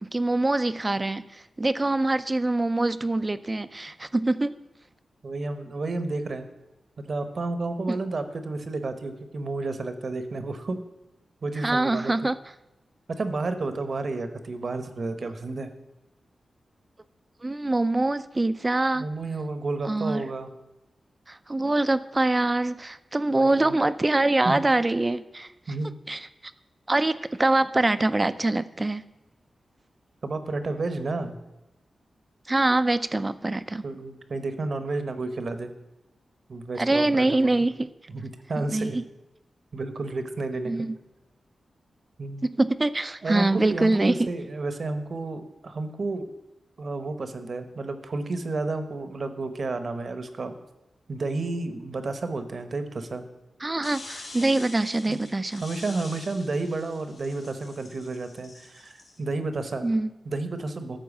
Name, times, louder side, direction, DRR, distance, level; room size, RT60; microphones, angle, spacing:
voice 1, 0.0-4.5 7.9-8.0 11.6-12.4 17.4-19.1 19.8-20.2 21.3-25.5 26.1-26.3 26.9-29.0 32.5-33.8 36.8-37.9 38.6-39.0 40.7-41.0 42.5-44.3 53.6-55.6 59.8-60.1, right 2 dB, 20° right, 13 dB, 0.5 m, -24 dB
voice 2, 5.2-6.5 7.1-10.9 11.4-12.2 13.1-15.7 18.9-20.5 23.3-23.7 24.4-24.6 25.7-25.9 30.2-31.4 33.8-35.7 36.5-37.5 38.1-39.0 39.7-40.9 42.2-42.5 43.2-46.3 46.8-50.5 51.1-53.2 55.1-55.2 55.6-59.9 60.3-61.0, right 3 dB, 55° right, 9 dB, 1.0 m, -31 dB
sound 1, 53.8-59.2, left 2 dB, 75° left, 2.9 m, -45 dB
13.0 x 4.6 x 7.2 m, 0.97 s
wide cardioid pair, 100°, 0 cm